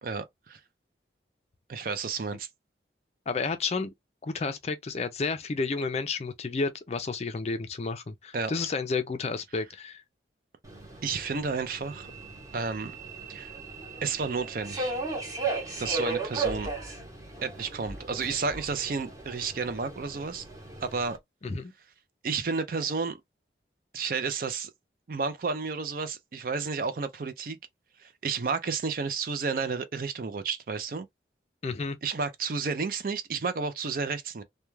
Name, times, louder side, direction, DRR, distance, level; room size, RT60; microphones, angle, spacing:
voice 1, 0.0-0.6 1.7-2.5 8.3-8.5 11.0-12.1 12.5-12.9 13.3-13.5 14.0-14.9 15.8-16.7 17.4-20.4 20.8-21.2 22.2-23.2 23.9-24.7 25.1-27.6 28.0-31.1 32.0-34.4, right 5 dB, 50° right, 0.4 m, -31 dB
voice 2, 3.3-3.9 4.2-10.0 21.4-21.7 31.6-32.0, left 4 dB, 35° left, 0.4 m, -31 dB
Subway metro underground, 10.6-21.2, right 3 dB, 20° right, 0.9 m, -36 dB
2.3 x 2.2 x 3.0 m
head